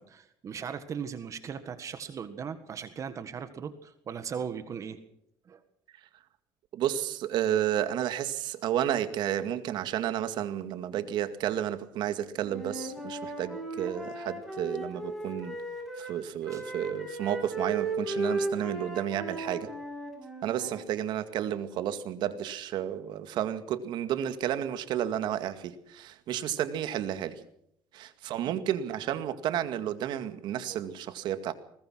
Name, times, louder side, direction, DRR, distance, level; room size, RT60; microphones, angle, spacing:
voice 1, 0.0-5.0 5.5-5.6 12.4-12.5 16.5-16.6 30.7-30.8, right 7 dB, 45° right, 10 dB, 1.7 m, -38 dB
voice 2, 6.7-15.5 16.0-19.7 20.4-27.4 27.9-31.5, right 11 dB, 75° right, 10 dB, 2.1 m, -31 dB
Wind instrument woodwind instrument, 12.4-16.2 16.4-20.8, right 2 dB, ahead, 6.9 m, -36 dB
21.0 x 19.5 x 6.3 m, 0.72 s
cardioid pair, 130°, 8 cm